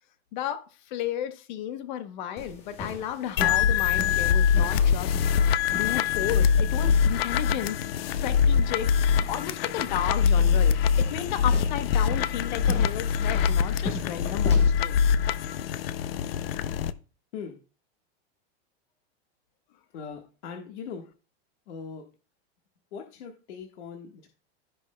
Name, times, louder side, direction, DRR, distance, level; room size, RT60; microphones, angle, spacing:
voice 1, 0.3-5.1 5.7-7.8 8.2-15.0, left 10 dB, 45° left, 0.9 m, -33 dB
sound 1, 2.4-14.9, left 3 dB, 20° left, 1.0 m, -40 dB
sound 2, 3.4-16.9, left 7 dB, 60° left, 0.6 m, -23 dB
voice 2, 19.9-21.0 21.7-22.0 22.9-24.3, left 6 dB, 75° left, 1.5 m, -40 dB
16.0 x 6.1 x 2.2 m
supercardioid pair, 180°, 34 cm